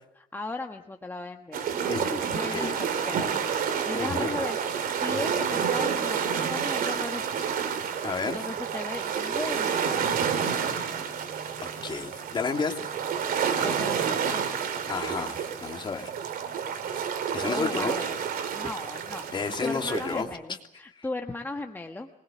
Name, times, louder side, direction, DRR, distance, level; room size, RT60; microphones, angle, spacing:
voice 1, 0.2-1.7 2.3-2.7 3.1-7.5 8.3-10.3 13.6-14.5 17.4-18.2 18.5-19.3 19.6-22.1, left 2 dB, 15° left, 4 dB, 1.3 m, -37 dB
sound 1, 1.5-20.2, right 7 dB, 85° right, 3.3 m, -29 dB
voice 2, 1.9-2.3 2.5-2.8 3.9-4.4 8.0-8.4 11.6-12.7 14.9-16.1 17.3-18.0 19.3-20.3 21.0-21.1, left 5 dB, 35° left, 3 dB, 3.1 m, -31 dB
26.0 x 21.0 x 7.3 m, 0.77 s
cardioid pair, 135°, 15 cm